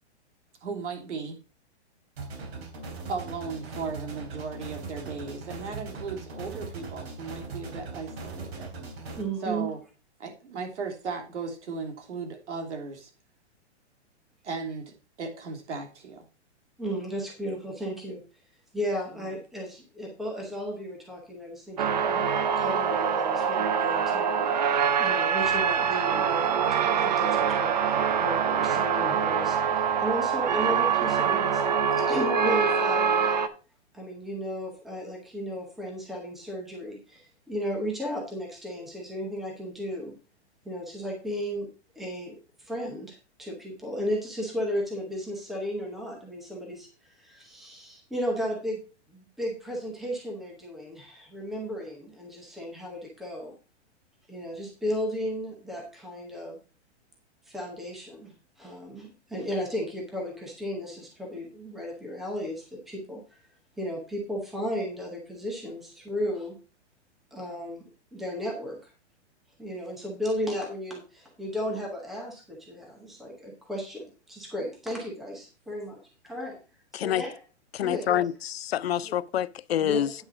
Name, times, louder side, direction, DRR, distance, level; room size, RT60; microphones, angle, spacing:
voice 1, 0.6-1.4 3.1-8.7 9.4-9.8 10.2-13.1 14.4-16.2 19.1-19.3, right 4 dB, 85° right, 3.1 m, -36 dB
sound 1, 2.2-9.2, right 3 dB, 60° right, 3.4 m, -39 dB
voice 2, 9.2-9.7 16.8-18.2 18.7-31.6 31.9-33.4 33.9-40.2 40.6-41.7 42.0-48.8 49.1-53.5 54.3-56.6 57.5-63.4 63.8-66.6 67.3-68.9 69.6-76.0 76.2-76.6 76.9-77.3 77.8-78.2 79.0-79.1 79.8-80.1, equal, ahead, 0.8 m, -34 dB
sound 2, 21.8-33.5, right 7 dB, 40° right, 0.6 m, -25 dB
voice 3, 76.9-77.2 77.7-80.1, left 11 dB, 60° left, 0.6 m, -27 dB
9.3 x 6.3 x 4.8 m
hypercardioid pair, 180°, 34 cm